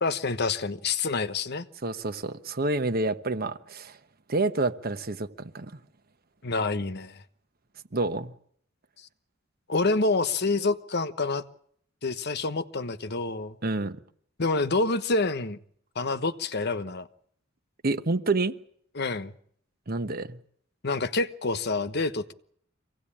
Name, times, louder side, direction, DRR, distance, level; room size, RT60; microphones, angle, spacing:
voice 1, 0.0-1.7 6.4-7.2 9.7-11.4 12.0-13.6 14.4-15.6 15.9-17.1 18.9-19.3 20.8-22.3, left 3 dB, 55° left, 1.2 m, -27 dB
voice 2, 1.8-4.0 4.3-5.7 7.9-8.3 13.6-14.0 17.8-18.5 19.9-20.4, right 2 dB, 50° right, 1.2 m, -28 dB
25.0 x 17.0 x 8.7 m
head